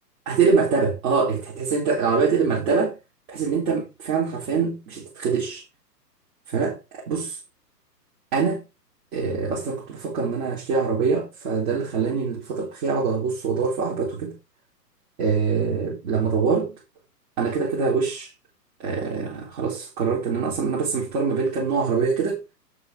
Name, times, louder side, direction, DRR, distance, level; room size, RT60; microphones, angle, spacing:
voice 1, 0.3-3.0 3.3-5.6 6.5-7.4 8.3-8.6 9.1-14.3 15.2-16.7 17.4-18.3 18.8-22.4, right 5 dB, 35° right, 3.8 m, -24 dB
7.8 x 6.7 x 4.8 m
hypercardioid pair, 140°, 49 cm